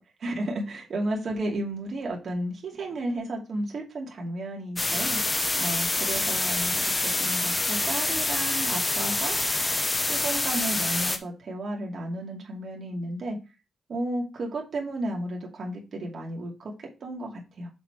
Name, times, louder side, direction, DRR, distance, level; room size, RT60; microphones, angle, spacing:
voice 1, 0.2-9.4 10.0-13.4 13.9-17.7, right 1 dB, 55° right, -1 dB, 2.5 m, -33 dB
sound 1, 4.8-11.2, left 2 dB, 20° left, 0.9 m, -26 dB
7.0 x 4.2 x 4.8 m, 0.28 s
cardioid pair, 110°, 0 cm